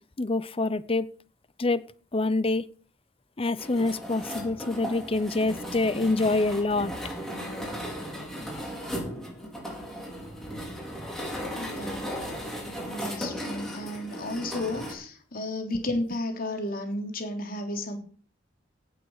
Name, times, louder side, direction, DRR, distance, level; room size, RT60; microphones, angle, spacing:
voice 1, 0.2-1.1 1.6-1.8 2.1-2.6 3.4-6.9, left 2 dB, 30° left, 17 dB, 0.7 m, -26 dB
sound 1, 3.6-14.9, equal, ahead, 5.1 m, -36 dB
voice 2, 11.6-12.2 12.9-18.0, left 1 dB, 50° left, 4 dB, 3.5 m, -33 dB
17.5 x 7.9 x 6.4 m, 0.43 s
head